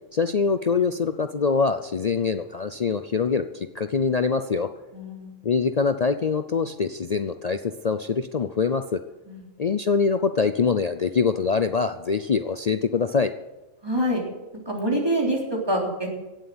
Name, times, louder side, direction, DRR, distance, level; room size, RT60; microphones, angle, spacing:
voice 1, 0.1-4.7 5.4-9.0 9.6-13.3, left 5 dB, 50° left, 9 dB, 0.5 m, -24 dB
voice 2, 4.9-5.3 9.3-9.4 13.8-14.2 14.7-16.1, right 1 dB, 20° right, -1 dB, 3.8 m, -25 dB
16.5 x 7.8 x 8.7 m, 1.1 s
omnidirectional pair, 1.4 m